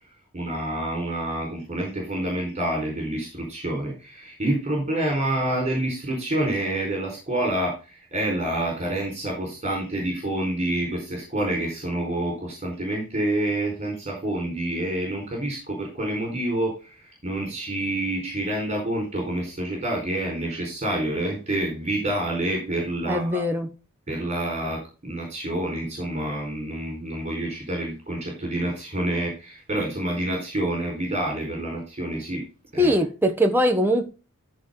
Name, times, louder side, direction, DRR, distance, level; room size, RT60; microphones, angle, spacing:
voice 1, 0.3-23.4 24.1-32.4 32.7-32.9, right 1 dB, 30° right, 0 dB, 4.5 m, -28 dB
voice 2, 23.1-23.7 32.8-34.1, equal, 10° right, 3 dB, 1.2 m, -21 dB
14.5 x 4.9 x 3.9 m, 0.32 s
head